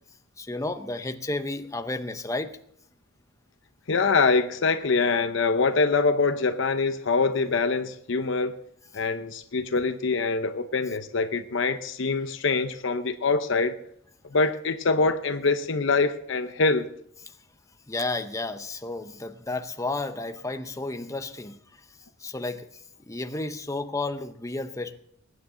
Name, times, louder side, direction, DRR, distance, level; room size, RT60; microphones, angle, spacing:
voice 1, 0.4-2.6 17.9-21.6 22.2-22.7 23.1-25.0, left 2 dB, 15° left, 8 dB, 0.7 m, -32 dB
voice 2, 3.9-8.5 8.9-13.7 14.3-16.9, left 4 dB, 65° left, 9 dB, 0.7 m, -24 dB
21.5 x 9.6 x 3.8 m, 0.69 s
head